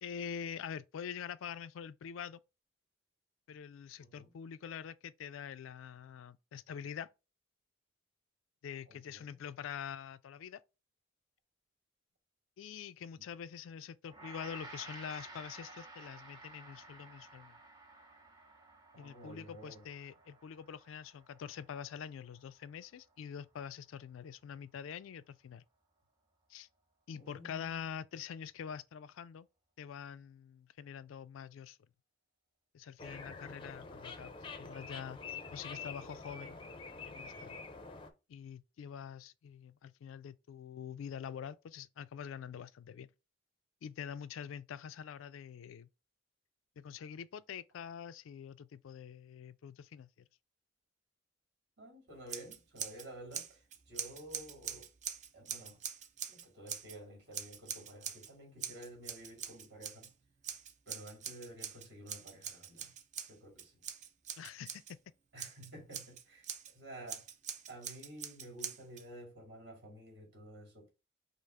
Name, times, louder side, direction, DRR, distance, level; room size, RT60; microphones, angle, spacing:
voice 1, 0.0-2.4 3.5-7.1 8.6-10.6 12.6-17.6 19.0-25.6 26.5-26.7 27.1-29.5 29.8-31.8 32.7-34.3 34.6-35.2 35.5-36.8 37.0-37.6 38.3-43.1 43.8-45.9 46.8-50.3 64.4-65.0, left 8 dB, 85° left, 0.3 m, -45 dB
voice 2, 4.0-4.3 8.9-9.4 13.2-13.3 18.9-19.9 27.1-27.8 51.8-54.9 55.3-55.8 56.3-60.1 60.9-62.9 63.3-63.8 65.3-67.3 67.7-70.9, right 1 dB, 55° right, 2.0 m, -52 dB
Gong, 14.1-23.5, right 3 dB, 20° right, 0.8 m, -54 dB
sound 1, 33.0-38.1, left 4 dB, 25° left, 0.5 m, -46 dB
Scissors, 52.3-53.1 53.3-57.0 57.3-58.3 58.6-60.1 60.4-64.9 65.4-66.7 67.1-69.0, right 8 dB, 35° right, 0.4 m, -43 dB
5.4 x 2.0 x 4.7 m
head